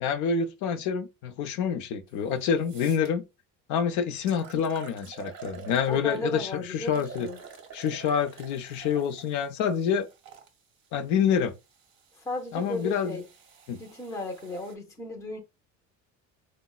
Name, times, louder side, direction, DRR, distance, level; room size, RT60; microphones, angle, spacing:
voice 1, 0.0-3.2 3.7-7.3 7.7-10.1 10.9-11.5 12.5-13.2 13.7-13.8, left 7 dB, 65° left, 0.6 m, -27 dB
sound 1, 2.1-2.2 2.6-3.1 3.8-3.9 4.3-6.3 6.9-10.5 11.3-14.7, right 6 dB, 40° right, 0.7 m, -48 dB
voice 2, 5.9-7.4 12.2-13.2 13.8-15.4, left 1 dB, 10° left, 0.6 m, -35 dB
3.9 x 2.1 x 2.3 m
cardioid pair, 150°, 31 cm